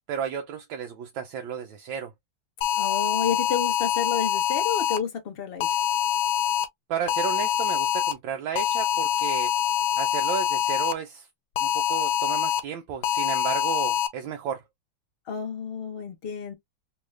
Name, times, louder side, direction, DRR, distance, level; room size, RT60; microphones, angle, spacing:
voice 1, 0.1-2.1 6.9-9.5 10.0-11.3 11.6-14.6, right 8 dB, 75° right, 1.3 m, -33 dB
sound 1, 2.6-5.0 5.6-6.7 7.1-8.1 8.6-10.9 11.6-12.6 13.0-14.1, left 10 dB, 90° left, 1.5 m, -25 dB
voice 2, 2.8-5.8 15.3-16.5, left 7 dB, 70° left, 0.5 m, -31 dB
3.6 x 2.3 x 3.1 m
omnidirectional pair, 2.2 m